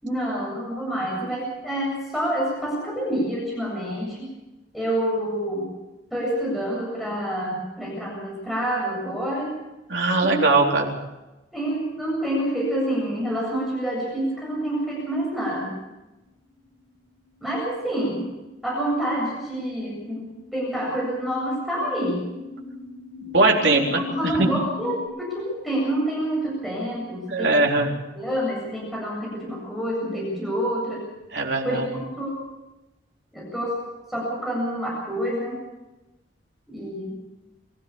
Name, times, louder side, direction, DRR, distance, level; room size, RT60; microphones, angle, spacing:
voice 1, 0.0-4.3 4.7-5.7 6.1-9.5 10.2-10.6 11.5-15.8 17.4-18.3 18.6-22.2 23.9-27.7 28.1-31.0 31.6-32.3 33.3-33.8 34.1-35.6 36.7-37.1, right 1 dB, ahead, -4 dB, 7.8 m, -27 dB
voice 2, 9.9-10.9 23.2-24.0 24.4-24.5 27.3-27.9 31.3-31.9, right 2 dB, 70° right, 1 dB, 3.9 m, -20 dB
sound 1, 16.4-25.1, left 4 dB, 25° left, 7.7 m, -40 dB
25.0 x 15.5 x 7.2 m, 1.0 s
head